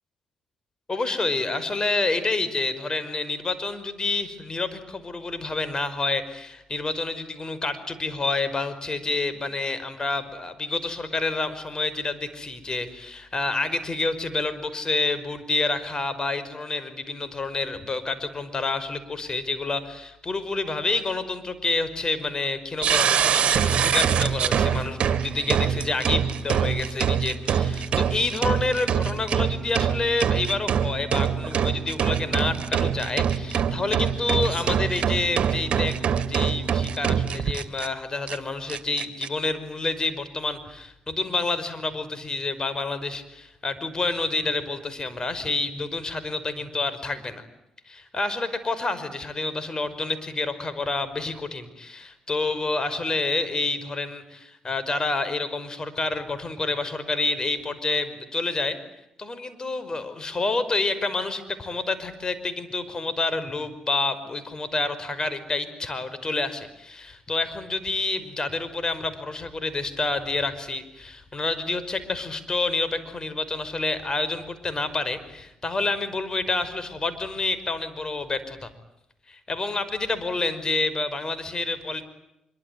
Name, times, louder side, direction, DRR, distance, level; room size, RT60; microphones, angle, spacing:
voice 1, 0.9-47.4 47.9-58.8 59.2-78.7 79.3-82.0, left 3 dB, 35° left, 12 dB, 5.4 m, -28 dB
sound 1, 22.8-37.9 38.3-38.4 38.7-39.3, right 8 dB, 60° right, 2.4 m, -24 dB
25.5 x 23.5 x 9.5 m, 0.87 s
supercardioid pair, 50°, 2 cm